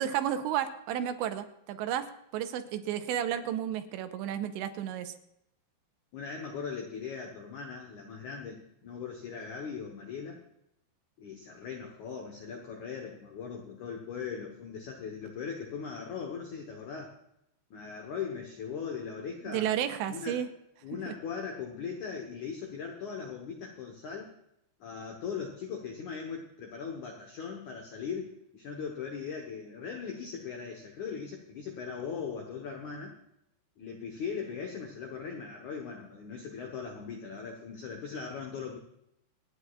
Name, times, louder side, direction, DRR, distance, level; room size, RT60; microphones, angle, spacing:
voice 1, 0.0-5.1 19.5-20.5 21.1-21.2, right 10 dB, 85° right, 8 dB, 2.9 m, -32 dB
voice 2, 6.1-10.4 11.2-17.1 17.7-19.7 20.1-20.4 20.8-24.3 24.8-33.2 33.8-38.8, left 6 dB, 90° left, 2 dB, 1.6 m, -39 dB
25.5 x 9.8 x 2.4 m, 0.80 s
omnidirectional pair, 5.3 m